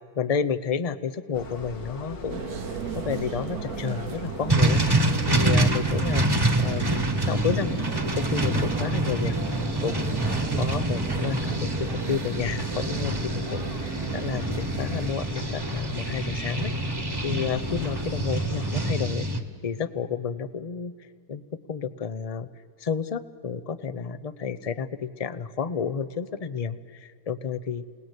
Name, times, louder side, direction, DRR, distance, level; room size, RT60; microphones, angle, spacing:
voice 1, 0.2-2.6 2.9-4.8 5.3-6.3 6.6-7.8 8.2-19.3 19.6-20.9 21.3-21.4 21.7-22.5 22.8-27.8, left 6 dB, 45° left, 13 dB, 0.5 m, -31 dB
sound 1, 1.3-18.9, left 3 dB, 65° left, 2.3 m, -39 dB
sound 2, 2.3-15.1, right 10 dB, 65° right, 1.3 m, -36 dB
sound 3, 4.5-19.4, right 2 dB, 15° right, 1.2 m, -26 dB
28.5 x 19.0 x 8.1 m, 2.2 s
omnidirectional pair, 1.8 m